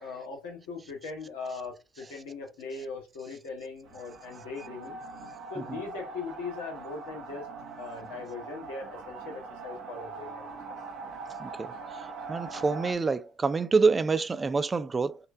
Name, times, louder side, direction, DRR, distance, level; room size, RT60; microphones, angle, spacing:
voice 1, 0.0-5.0 5.5-7.5 7.8-10.5, left 4 dB, 80° left, 1.8 m, -40 dB
sound 1, 3.9-12.9, right 4 dB, 60° right, 1.1 m, -42 dB
voice 2, 11.4-11.7 12.3-15.2, right 4 dB, 30° right, 0.5 m, -27 dB
4.2 x 2.6 x 3.5 m
hypercardioid pair, 70°, 0 cm